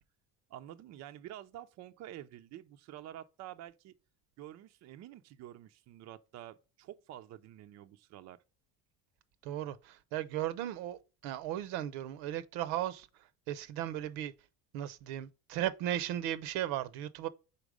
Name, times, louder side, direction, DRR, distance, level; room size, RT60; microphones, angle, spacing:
voice 1, 0.5-3.9 4.4-8.4, right 12 dB, 45° right, 0.5 m, -49 dB
voice 2, 9.4-13.1 13.5-14.3 14.7-17.3, right 12 dB, 80° right, 0.8 m, -36 dB
5.2 x 4.4 x 4.8 m
cardioid pair, 135°, 38 cm